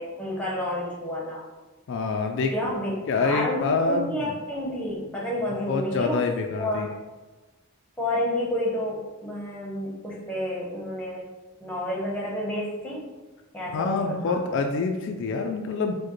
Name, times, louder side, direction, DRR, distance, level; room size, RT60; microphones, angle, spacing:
voice 1, 0.0-1.4 2.5-2.9 3.2-6.2 6.5-6.9 8.0-11.3 11.6-13.1 13.5-14.4, left 1 dB, 5° left, -4 dB, 0.8 m, -30 dB
voice 2, 1.9-2.5 3.1-4.4 5.5-6.9 13.7-15.9, left 4 dB, 60° left, 3 dB, 0.3 m, -26 dB
4.7 x 2.2 x 3.0 m, 1.2 s
head